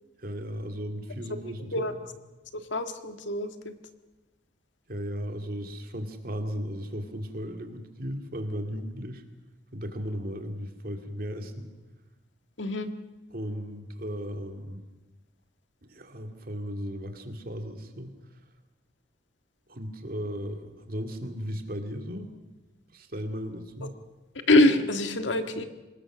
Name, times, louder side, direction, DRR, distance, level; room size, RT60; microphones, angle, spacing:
voice 1, 0.2-2.0 4.9-9.2 9.7-11.7 13.3-14.8 15.8-18.1 19.7-22.3 22.9-23.9, equal, 50° right, 5 dB, 2.4 m, -36 dB
voice 2, 2.5-3.7 12.6-12.9 24.5-25.7, left 1 dB, 80° left, 8 dB, 1.8 m, -24 dB
25.0 x 20.0 x 6.3 m, 1.1 s
head